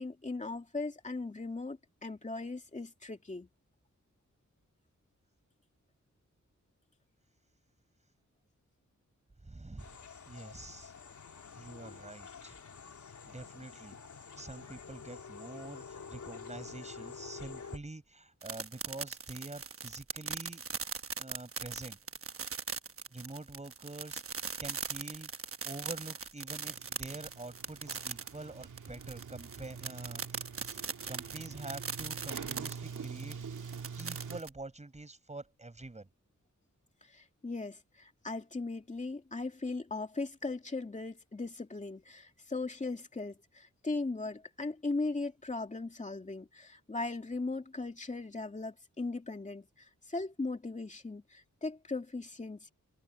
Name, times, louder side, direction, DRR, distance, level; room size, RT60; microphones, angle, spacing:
voice 1, 0.0-3.5 37.0-52.7, left 3 dB, 25° left, 2.6 m, -38 dB
voice 2, 9.4-10.0 10.3-10.9 11.6-12.6 13.3-14.0 14.4-20.6 21.2-22.0 23.1-25.3 25.6-30.8 31.1-33.4 34.0-36.1, right 2 dB, 20° right, 5.2 m, -46 dB
sound 1, 9.8-17.8, left 5 dB, 75° left, 3.6 m, -48 dB
sound 2, 18.4-34.5, right 5 dB, 45° right, 1.1 m, -40 dB
Sliding door, 26.5-34.4, right 6 dB, 80° right, 2.2 m, -45 dB
wide cardioid pair, 145°, 30 cm